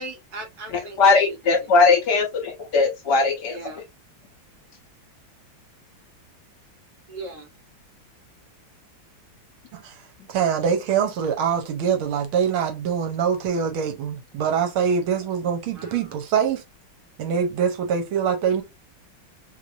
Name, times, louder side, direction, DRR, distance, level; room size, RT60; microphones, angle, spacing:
voice 1, 0.0-1.4 3.5-3.8 7.1-7.5 15.7-16.0, right 2 dB, 55° right, 1.3 m, -37 dB
voice 2, 1.0-3.6, left 4 dB, 65° left, 1.3 m, -19 dB
voice 3, 10.3-16.6 17.2-18.6, right 7 dB, 80° right, 1.7 m, -24 dB
3.3 x 3.3 x 2.5 m
omnidirectional pair, 2.3 m